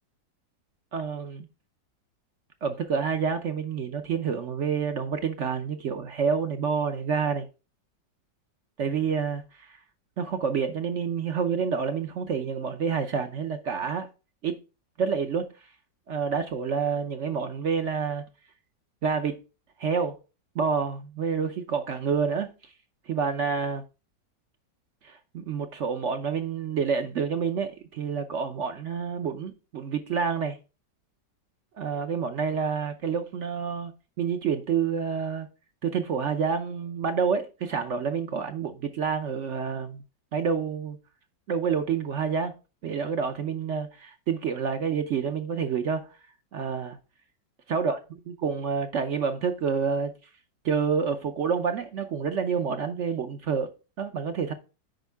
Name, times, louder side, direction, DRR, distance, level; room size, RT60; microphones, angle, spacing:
voice 1, 0.9-1.5 2.6-7.5 8.8-9.8 10.2-14.1 14.4-14.6 15.0-15.5 16.1-18.2 19.0-19.4 19.8-20.2 20.5-22.5 23.1-23.8 25.0-30.6 31.8-33.9 34.2-35.5 35.8-40.0 40.3-41.0 41.5-42.5 42.8-46.0 46.5-47.0 47.7-48.0 48.4-50.1 50.6-53.7 54.0-54.5, right 6 dB, 60° right, 0.7 m, -28 dB
9.2 x 5.2 x 3.5 m
omnidirectional pair, 2.0 m